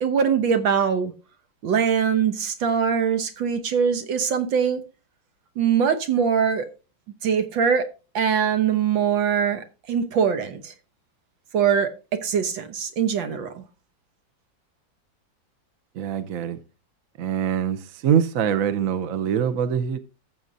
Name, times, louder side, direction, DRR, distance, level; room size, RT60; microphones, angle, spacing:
voice 1, 0.0-1.1 1.6-4.8 5.6-6.7 7.2-7.9 8.2-10.7 11.5-13.6, right 7 dB, 90° right, 1.9 m, -22 dB
voice 2, 15.9-16.6 17.2-20.0, right 8 dB, 60° right, 1.0 m, -24 dB
13.5 x 7.8 x 2.7 m
omnidirectional pair, 2.0 m